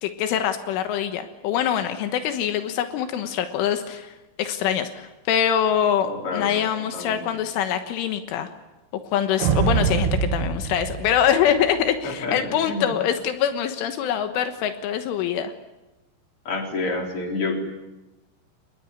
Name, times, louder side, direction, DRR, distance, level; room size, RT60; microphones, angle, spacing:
voice 1, 0.0-8.5 9.0-15.5, left 9 dB, 85° left, 8 dB, 3.8 m, -24 dB
voice 2, 6.0-6.5 6.9-7.2 12.0-12.9 16.4-17.6, left 3 dB, 30° left, 2 dB, 4.5 m, -29 dB
sound 1, 9.4-11.9, right 6 dB, 75° right, 4.0 m, -24 dB
26.5 x 21.5 x 9.6 m, 1.1 s
omnidirectional pair, 5.6 m